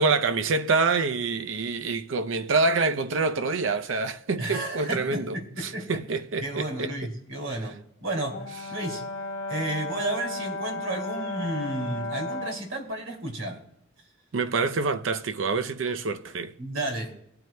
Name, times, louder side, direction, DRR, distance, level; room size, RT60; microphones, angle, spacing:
voice 1, 0.0-6.9 14.3-16.5, right 4 dB, 70° right, 0.6 m, -26 dB
voice 2, 4.4-6.0 6.4-9.0 9.5-13.6 16.6-17.1, right 1 dB, 85° right, 2.7 m, -32 dB
Brass instrument, 8.3-12.7, left 2 dB, 60° left, 1.5 m, -34 dB
18.5 x 9.3 x 2.2 m
head